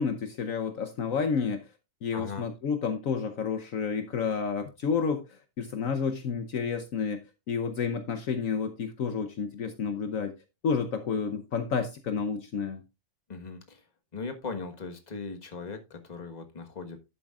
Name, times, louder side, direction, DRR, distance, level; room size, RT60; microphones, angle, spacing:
voice 1, 0.0-1.7 2.0-7.2 7.5-10.4 10.6-12.8, left 6 dB, 65° left, 1.2 m, -30 dB
voice 2, 2.1-2.5 13.3-13.9 14.1-17.0, left 4 dB, 30° left, 1.4 m, -39 dB
11.5 x 8.3 x 2.4 m
omnidirectional pair, 1.6 m